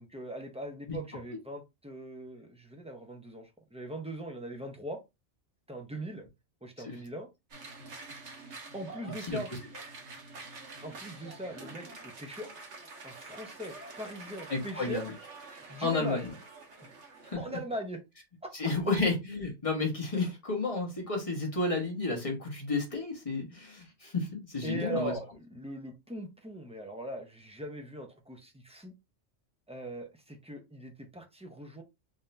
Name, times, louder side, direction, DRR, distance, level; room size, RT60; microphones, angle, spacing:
voice 1, 0.0-5.0 5.7-6.2 6.6-7.3 8.7-9.5 10.8-12.5 13.0-15.1 15.7-16.3 16.8-18.0 18.4-18.7 24.6-28.9 29.7-31.8, right 1 dB, 10° right, 0.5 m, -40 dB
sound 1, 7.5-17.3, right 3 dB, 70° right, 1.3 m, -47 dB
voice 2, 14.5-15.0 15.8-16.3 17.3-17.4 18.5-24.3 24.5-25.1, left 3 dB, 30° left, 1.3 m, -31 dB
3.9 x 2.8 x 3.2 m
omnidirectional pair, 1.2 m